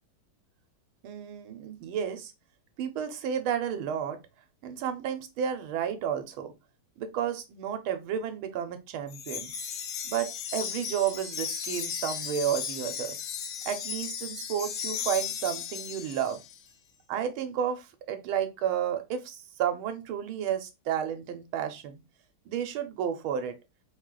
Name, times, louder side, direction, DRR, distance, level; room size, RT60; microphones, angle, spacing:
voice 1, 1.0-2.3 2.8-4.2 4.6-6.5 7.0-9.5 10.1-13.2 13.7-16.4 17.1-22.0 22.5-23.6, right 9 dB, 75° right, 8 dB, 1.5 m, -32 dB
Wind chime, 9.1-16.6, left 8 dB, 75° left, 1.5 m, -36 dB
4.6 x 2.4 x 3.7 m, 0.25 s
omnidirectional pair, 2.3 m